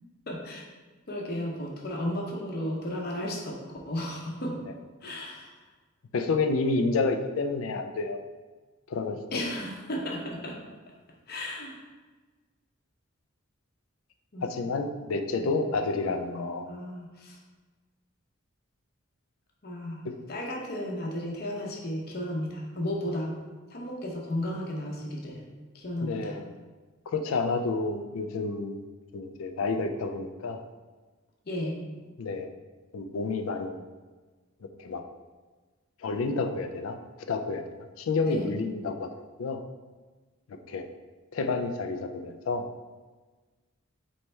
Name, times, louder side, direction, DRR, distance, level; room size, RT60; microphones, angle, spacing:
voice 1, 0.3-0.6 1.1-4.6 5.0-5.5 9.3-10.6 11.3-11.8 14.3-14.5 15.4-15.5 15.9-17.4 19.6-20.0 20.3-23.3 23.7-25.4 25.7-26.3 31.5-31.8 38.2-38.6, left 1 dB, 50° left, -1 dB, 0.7 m, -34 dB
voice 2, 6.1-8.2 8.9-9.2 14.4-16.7 20.0-20.1 26.0-26.5 27.1-28.8 29.1-30.6 32.2-32.5 32.9-33.8 34.8-35.0 36.0-37.0 37.3-39.1 39.4-39.6 40.7-40.8 41.3-42.7, left 3 dB, 85° left, 6 dB, 0.4 m, -29 dB
4.3 x 3.2 x 3.3 m, 1.3 s
head